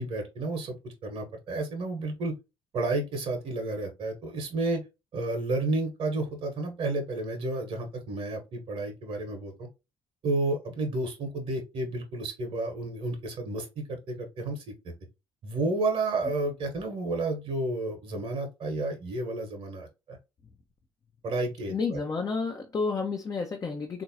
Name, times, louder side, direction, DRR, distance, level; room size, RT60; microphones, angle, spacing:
voice 1, 0.0-2.3 2.7-4.8 5.1-9.7 10.2-14.9 15.4-20.2 21.2-22.0, right 2 dB, 50° right, 1.0 m, -31 dB
voice 2, 21.7-24.0, left 4 dB, 30° left, 0.6 m, -30 dB
3.8 x 2.6 x 2.7 m
figure-of-eight pair, 50°, 12 cm